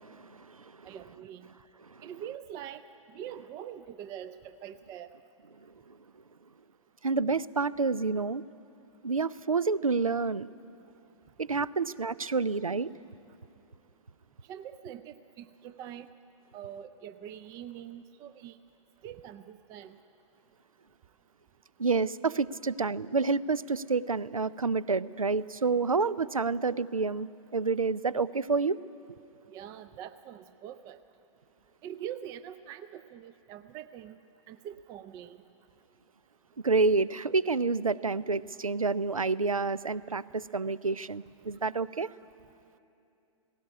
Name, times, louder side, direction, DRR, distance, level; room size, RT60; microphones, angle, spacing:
voice 1, 0.0-0.9 1.9-2.0 5.6-6.0 7.0-8.4 9.0-10.5 11.4-12.9 21.8-28.8 36.6-42.1, right 4 dB, 80° right, 20 dB, 0.5 m, -29 dB
voice 2, 0.8-1.5 2.0-2.8 3.1-5.1 14.5-16.1 16.5-18.6 19.0-20.0 29.5-31.0 31.8-34.2 34.5-35.4, right 10 dB, 20° right, 11 dB, 0.4 m, -43 dB
17.5 x 17.0 x 9.7 m, 2.7 s
figure-of-eight pair, 115°, 17 cm